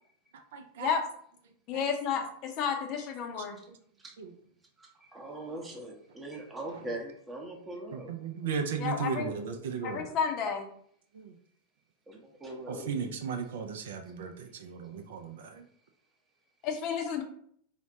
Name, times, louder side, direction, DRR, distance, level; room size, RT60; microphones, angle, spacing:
voice 1, 0.3-0.9 1.7-1.8 3.7-3.8 4.2-4.3 7.9-10.1 11.1-11.4 12.7-15.7, right 6 dB, 60° right, 5 dB, 0.3 m, -36 dB
voice 2, 1.7-3.6 8.8-9.3 9.8-10.7 12.7-12.8 16.6-17.2, left 6 dB, 40° left, 4 dB, 0.6 m, -31 dB
voice 3, 4.8-8.1 12.1-12.9, right 1 dB, 15° right, 2 dB, 0.7 m, -41 dB
3.9 x 2.1 x 2.7 m, 0.63 s
figure-of-eight pair, 90°, 0 cm